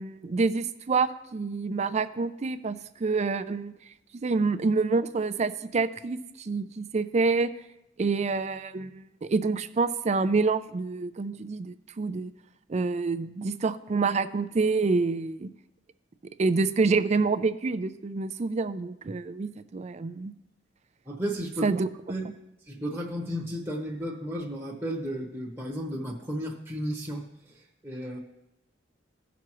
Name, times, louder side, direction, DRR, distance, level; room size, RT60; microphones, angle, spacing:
voice 1, 0.0-3.7 4.1-7.5 8.0-12.3 12.7-15.5 16.4-20.3 21.6-21.9, right 4 dB, 35° right, 12 dB, 0.4 m, -27 dB
voice 2, 21.0-21.7 22.1-22.2 22.7-27.2 27.8-28.2, equal, 15° right, -3 dB, 1.0 m, -33 dB
16.5 x 6.0 x 3.0 m, 0.87 s
head